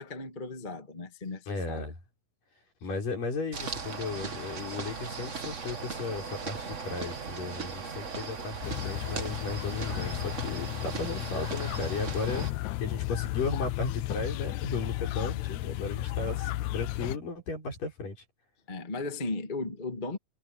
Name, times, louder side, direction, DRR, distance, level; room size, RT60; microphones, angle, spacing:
voice 1, 0.0-1.9 15.2-15.4 18.7-20.2, left 3 dB, 20° left, 1.2 m, -36 dB
voice 2, 1.5-1.9 2.8-12.5 12.8-18.2, left 3 dB, 65° left, 8.2 m, -35 dB
sound 1, 3.5-12.5, right 5 dB, 75° right, 0.6 m, -38 dB
sound 2, 8.6-17.2, left 17 dB, 85° left, 1.6 m, -34 dB
omnidirectional pair, 4.1 m